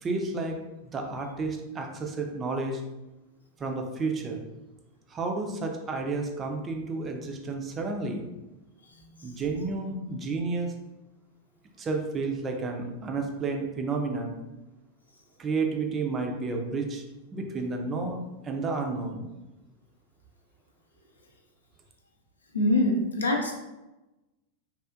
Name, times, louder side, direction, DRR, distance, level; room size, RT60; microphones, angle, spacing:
voice 1, 0.0-2.8 3.6-4.4 5.1-8.3 9.2-10.7 11.8-14.4 15.4-17.0 17.3-19.3, right 3 dB, 25° right, 3 dB, 0.4 m, -31 dB
voice 2, 22.5-23.5, left 1 dB, 75° left, 1 dB, 0.5 m, -24 dB
3.4 x 2.4 x 2.4 m, 1.0 s
figure-of-eight pair, 90°, 0 cm